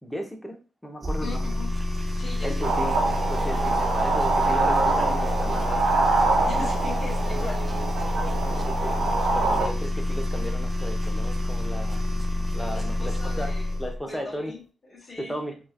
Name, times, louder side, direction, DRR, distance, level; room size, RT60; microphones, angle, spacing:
voice 1, 0.0-1.5 2.4-3.0 3.3-6.0 8.4-12.1 12.5-13.5 13.8-14.5 15.2-15.6, equal, 5° left, 2 dB, 0.9 m, -35 dB
sound 1, 1.0-14.0, left 1 dB, 30° right, 0.5 m, -28 dB
voice 2, 1.2-1.7 2.2-2.6 6.4-8.1 12.7-13.7 14.0-14.6 14.9-15.4, left 3 dB, 50° left, -4 dB, 1.4 m, -39 dB
sound 2, 2.6-9.7, right 3 dB, 85° right, 0.7 m, -25 dB
3.0 x 2.3 x 2.4 m, 0.33 s
supercardioid pair, 55°, 0 cm